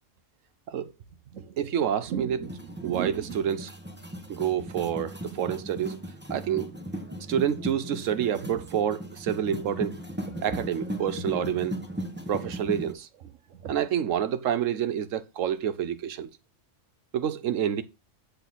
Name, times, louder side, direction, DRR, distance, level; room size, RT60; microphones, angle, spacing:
voice 1, 1.3-3.7 4.3-6.0 6.3-6.7 7.3-10.0 10.3-11.8 12.3-13.1 13.6-16.3 17.1-17.8, right 9 dB, 85° right, 1.1 m, -28 dB
sound 1, 2.4-12.9, equal, 10° right, 0.9 m, -37 dB
8.0 x 6.6 x 3.9 m
omnidirectional pair, 1.3 m